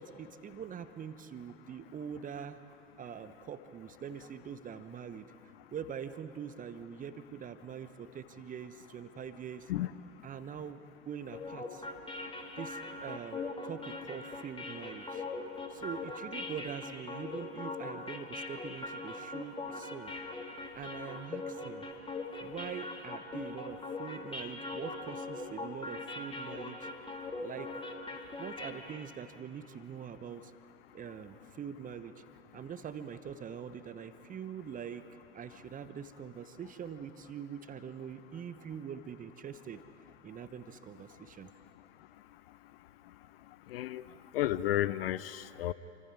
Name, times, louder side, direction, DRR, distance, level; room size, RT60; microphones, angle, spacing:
voice 1, 0.0-2.6 3.0-5.3 5.7-9.7 10.2-10.8 11.0-11.8 12.6-15.2 15.7-20.1 20.7-21.9 22.4-26.9 27.4-27.7 28.4-30.5 30.9-32.1 32.5-35.0 35.3-39.8 40.2-41.5, right 8 dB, 25° right, 11 dB, 1.0 m, -44 dB
sound 1, 11.3-29.2, left 3 dB, 15° left, 2.0 m, -41 dB
voice 2, 43.7-44.0 44.3-45.7, left 14 dB, 60° left, 17 dB, 0.6 m, -32 dB
27.5 x 25.0 x 4.9 m, 2.7 s
figure-of-eight pair, 80°, 34 cm